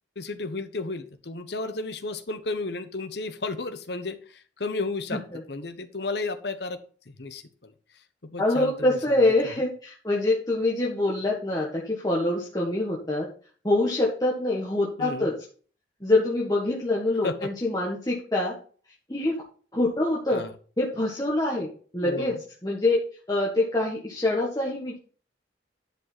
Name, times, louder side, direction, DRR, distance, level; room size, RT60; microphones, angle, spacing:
voice 1, 0.2-5.2 5.5-6.8 7.1-7.7 8.2-9.1 15.0-15.3 17.2-17.5 20.3-20.5 22.0-22.3, left 3 dB, 65° left, 9 dB, 1.1 m, -33 dB
voice 2, 5.1-5.4 8.4-13.3 13.6-15.4 16.0-18.6 19.1-19.4 19.7-20.4 20.8-21.7 21.9-23.0 23.3-25.0, left 2 dB, 20° left, -4 dB, 1.6 m, -25 dB
10.5 x 5.4 x 4.1 m, 0.42 s
head